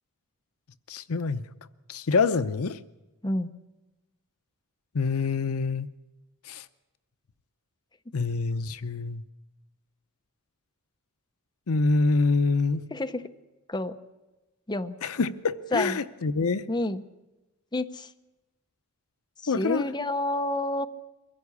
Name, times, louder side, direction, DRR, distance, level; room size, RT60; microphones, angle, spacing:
voice 1, 0.9-1.4 1.9-2.8 4.9-5.9 6.5-6.6 8.1-9.2 11.7-12.8 15.0-16.6 19.5-19.8, left 4 dB, 70° left, 13 dB, 0.7 m, -26 dB
voice 2, 12.9-13.2 13.7-14.0 14.7-15.0 15.7-16.0 16.7-17.0 17.7-18.1 19.4-20.9, left 1 dB, 20° left, 7 dB, 0.8 m, -29 dB
23.0 x 16.0 x 8.4 m, 1.1 s
head